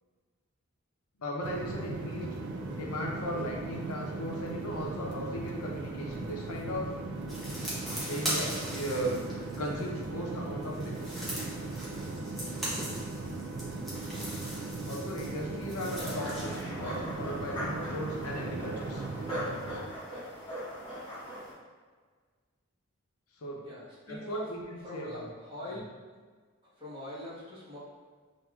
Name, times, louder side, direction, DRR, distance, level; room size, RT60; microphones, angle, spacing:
voice 1, 1.2-2.4 2.7-6.9 8.1-11.3 14.9-19.0 23.4-23.6 24.1-25.3 25.7-25.8, equal, 85° left, -1 dB, 0.6 m, -37 dB
sound 1, 1.4-20.0, right 3 dB, 50° right, 0.3 m, -38 dB
sound 2, 7.3-10.0 10.6-16.6, equal, ahead, 0.8 m, -39 dB
sound 3, 15.8-21.5, equal, 25° left, 1.1 m, -40 dB
voice 2, 23.6-24.5 24.8-25.9 26.8-27.8, left 1 dB, 20° right, -10 dB, 1.2 m, -42 dB
5.6 x 2.5 x 2.3 m, 1.5 s
head